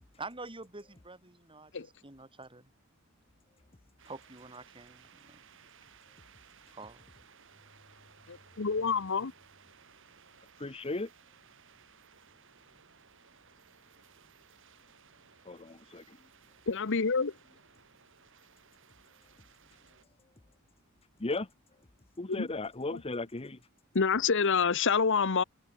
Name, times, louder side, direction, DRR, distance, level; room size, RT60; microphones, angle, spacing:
voice 1, 0.2-2.7 4.0-5.4 6.7-7.0, right 3 dB, 25° right, 4.8 m, -47 dB
sound 1, 4.0-20.1, right 7 dB, 65° right, 6.1 m, -60 dB
voice 2, 8.3-9.3 16.7-17.3 22.4-22.5 23.9-25.4, left 5 dB, 60° left, 1.0 m, -27 dB
voice 3, 10.6-11.1 15.4-16.3 21.2-21.5 22.2-23.6, left 2 dB, 25° left, 1.0 m, -36 dB
head